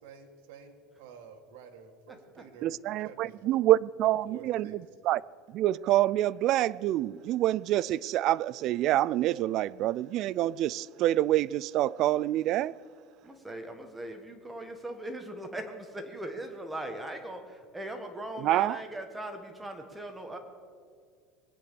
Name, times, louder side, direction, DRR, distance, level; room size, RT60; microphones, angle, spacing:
voice 1, 0.0-3.7 4.0-4.8, right 6 dB, 75° right, 1.8 m, -50 dB
voice 2, 2.6-5.2 5.5-12.8 18.4-18.8, right 14 dB, 45° right, 0.3 m, -27 dB
voice 3, 13.2-20.4, right 1 dB, 10° right, 1.3 m, -40 dB
21.5 x 9.6 x 6.9 m
cardioid pair, 155°, 0 cm